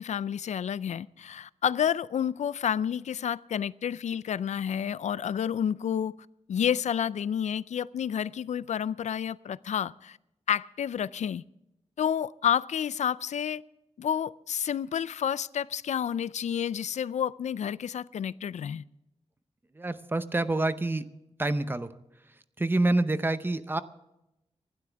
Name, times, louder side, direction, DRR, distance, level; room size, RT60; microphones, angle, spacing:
voice 1, 0.0-6.2 6.5-10.2 10.5-11.4 12.0-13.6 14.0-18.8, left 8 dB, 85° left, 0.4 m, -30 dB
voice 2, 19.7-21.0 21.4-21.9 22.6-23.8, right 2 dB, 20° right, 0.7 m, -27 dB
26.0 x 12.0 x 3.5 m
wide cardioid pair, 155°, 12 cm